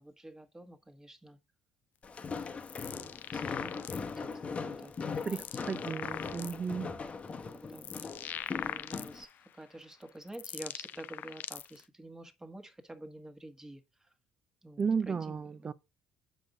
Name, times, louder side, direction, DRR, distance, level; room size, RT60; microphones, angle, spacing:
voice 1, 0.0-1.4 2.4-2.5 2.8-5.9 7.3-7.9 8.5-14.1 14.6-15.7, right 1 dB, 15° right, 1.5 m, -49 dB
Walk footsteps, 2.0-9.2, left 5 dB, 35° left, 1.0 m, -40 dB
sound 1, 2.4-4.2 4.8-6.7 7.3-9.4 10.0-11.8, left 10 dB, 55° left, 0.4 m, -42 dB
voice 2, 5.3-6.9 14.8-15.7, right 6 dB, 35° right, 0.6 m, -34 dB
7.8 x 5.1 x 3.8 m
hypercardioid pair, 60°, 4 cm